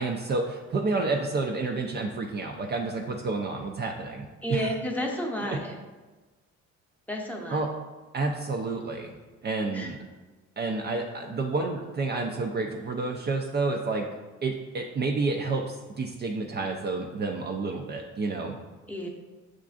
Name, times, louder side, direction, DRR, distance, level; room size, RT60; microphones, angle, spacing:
voice 1, 0.0-4.7 5.4-5.6 7.5-7.7 8.1-9.1 9.4-10.0 10.6-14.1 14.4-18.6, right 3 dB, 35° right, 2 dB, 0.4 m, -30 dB
voice 2, 4.4-5.7 7.1-7.6 9.7-9.9 18.9-19.1, equal, 5° left, -1 dB, 0.7 m, -31 dB
6.4 x 2.5 x 2.4 m, 1.2 s
cardioid pair, 90°, 30 cm